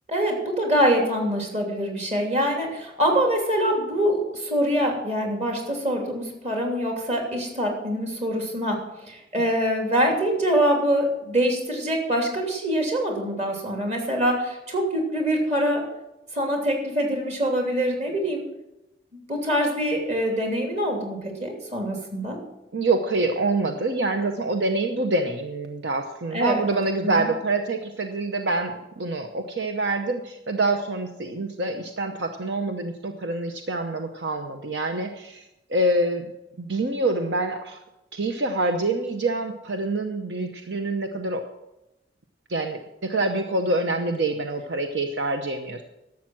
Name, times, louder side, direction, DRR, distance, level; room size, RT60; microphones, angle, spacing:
voice 1, 0.1-15.8 16.3-18.4 19.3-22.4 26.3-26.7 27.0-27.3, equal, 35° right, 1 dB, 2.9 m, -24 dB
voice 2, 22.7-35.4 35.7-36.3 36.6-37.8 38.1-41.5 42.5-45.8, right 2 dB, 75° right, 6 dB, 0.8 m, -26 dB
12.0 x 7.4 x 7.5 m, 0.93 s
head